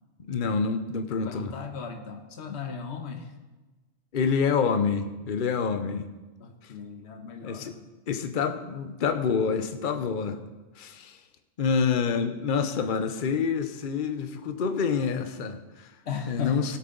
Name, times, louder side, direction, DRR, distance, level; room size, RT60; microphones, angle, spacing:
voice 1, 0.3-1.5 4.1-6.1 7.4-7.7 8.1-10.4 10.8-11.2 11.6-15.9 16.3-16.8, left 6 dB, 50° left, 9 dB, 0.9 m, -27 dB
voice 2, 1.2-3.3 6.4-7.8 16.0-16.8, left 6 dB, 70° left, 5 dB, 1.3 m, -36 dB
16.5 x 8.6 x 3.9 m, 1.2 s
omnidirectional pair, 1.2 m